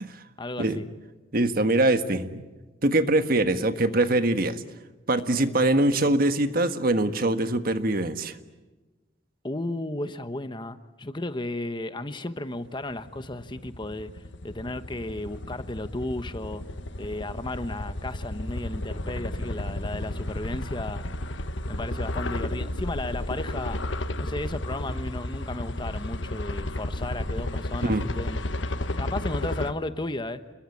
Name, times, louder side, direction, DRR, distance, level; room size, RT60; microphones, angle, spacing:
voice 1, 0.4-0.8 9.4-16.6 17.0-21.1 21.7-23.8 24.2-28.4 29.0-30.4, left 2 dB, 25° left, 11 dB, 1.1 m, -34 dB
voice 2, 1.3-2.5 2.8-4.6 5.1-8.4 27.8-28.0, right 2 dB, 50° right, 9 dB, 1.6 m, -23 dB
sound 1, 12.9-29.7, left 1 dB, 85° left, 1.5 m, -32 dB
29.5 x 22.0 x 8.6 m, 1.2 s
head